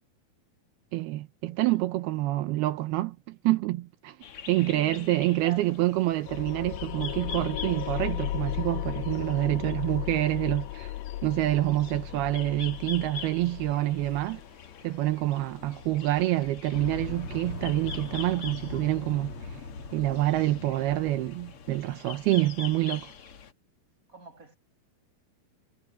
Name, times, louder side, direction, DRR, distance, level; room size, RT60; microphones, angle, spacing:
voice 1, 0.9-4.2 4.5-10.9 11.2-14.4 14.8-19.3 19.9-23.1, right 16 dB, 85° right, 2.8 m, -27 dB
sound 1, 4.2-23.5, left 7 dB, 55° left, 1.6 m, -45 dB
voice 2, 4.5-5.8 15.6-15.9 24.1-24.6, right 2 dB, 20° right, 8.3 m, -47 dB
sound 2, 6.3-17.3, left 15 dB, 80° left, 2.4 m, -36 dB
sound 3, 16.7-22.1, left 3 dB, 40° left, 2.8 m, -40 dB
omnidirectional pair, 4.6 m